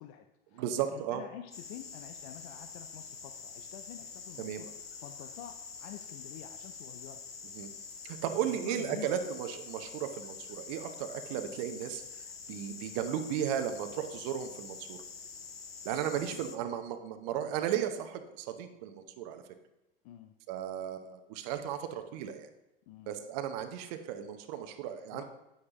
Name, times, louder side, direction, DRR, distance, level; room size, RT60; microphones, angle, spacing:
voice 1, 0.0-7.2 8.4-9.1 15.9-16.4 20.0-20.3 22.9-23.2 25.1-25.2, left 11 dB, 40° left, 7 dB, 0.5 m, -48 dB
voice 2, 0.5-1.2 4.4-4.6 7.5-7.7 8.0-12.0 12.5-15.0 15.8-19.4 20.5-22.5 23.1-25.2, right 9 dB, 40° right, 7 dB, 0.8 m, -35 dB
sound 1, 1.5-16.6, left 5 dB, 80° left, 0.8 m, -46 dB
9.5 x 8.7 x 3.0 m, 0.90 s
figure-of-eight pair, 85°, 30 cm